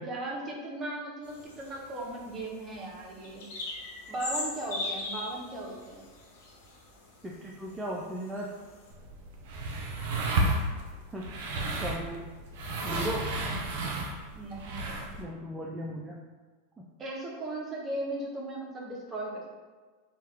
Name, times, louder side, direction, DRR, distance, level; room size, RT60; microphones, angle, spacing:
voice 1, 0.0-3.5 4.1-6.0 14.3-14.9 17.0-19.4, right 1 dB, 25° right, -2 dB, 0.7 m, -37 dB
sound 1, 1.2-7.3 7.7-8.9, left 2 dB, 75° left, 0.7 m, -39 dB
voice 2, 7.2-8.5 11.1-11.3 11.8-12.3 12.8-13.3 15.2-16.2 16.8-16.9, right 1 dB, 10° right, -4 dB, 0.4 m, -36 dB
sound 2, 8.9-15.2, right 2 dB, 70° right, 0.5 m, -32 dB
2.8 x 2.3 x 3.4 m, 1.4 s
hypercardioid pair, 110°, 0 cm